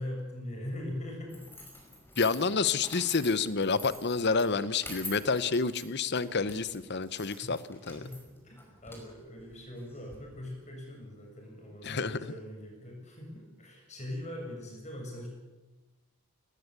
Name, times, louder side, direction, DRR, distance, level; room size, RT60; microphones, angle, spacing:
voice 1, 0.0-1.4 8.0-8.6 8.8-15.3, left 1 dB, 30° left, 1 dB, 7.7 m, -41 dB
sound 1, 1.3-10.2, left 1 dB, 10° left, 5.3 m, -47 dB
voice 2, 2.2-8.1 11.8-12.3, left 4 dB, 50° left, 15 dB, 0.9 m, -29 dB
19.5 x 19.0 x 8.2 m, 1.1 s
head